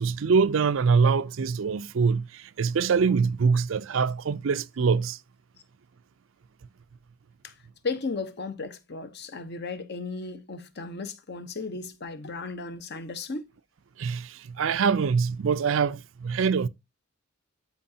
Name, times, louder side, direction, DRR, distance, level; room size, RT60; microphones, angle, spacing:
voice 1, 0.0-5.2 14.0-16.7, right 5 dB, 65° right, 0.4 m, -24 dB
voice 2, 7.8-13.5, left 4 dB, 50° left, 0.9 m, -35 dB
13.0 x 4.7 x 2.7 m
head